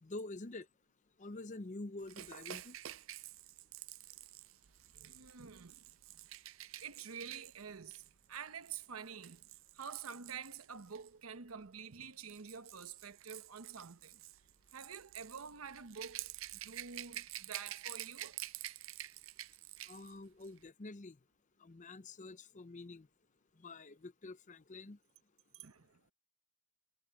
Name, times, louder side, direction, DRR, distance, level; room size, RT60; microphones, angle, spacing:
voice 1, 0.0-0.7 1.2-2.8 19.9-21.2 21.6-23.1 23.6-25.0, left 2 dB, 35° left, 0.6 m, -47 dB
Rattle / Rattle (instrument), 2.1-11.1 12.0-20.1 20.4-20.6, right 14 dB, 65° right, 0.5 m, -49 dB
voice 2, 4.9-5.9 6.8-9.5 9.7-14.2 14.7-18.4 25.5-26.0, right 6 dB, 80° right, 1.0 m, -48 dB
head